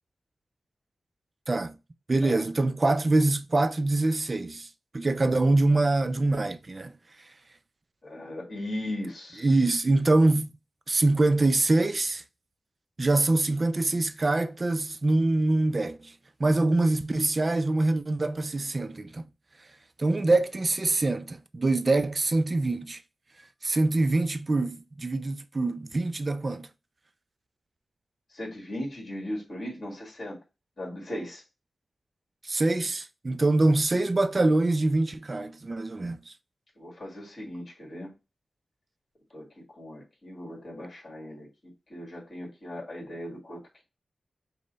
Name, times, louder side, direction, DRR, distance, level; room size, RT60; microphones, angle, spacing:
voice 1, 2.1-6.9 9.4-10.5 10.9-12.2 13.0-16.1 16.4-19.3 20.0-23.0 23.6-26.7 32.4-36.3, right 2 dB, 30° right, 0.4 m, -24 dB
voice 2, 8.0-9.6 28.3-30.4 30.8-31.4 36.8-38.1 39.3-41.5 41.9-43.8, left 1 dB, 45° left, 1.7 m, -38 dB
5.3 x 2.1 x 3.9 m
wide cardioid pair, 135°, 0 cm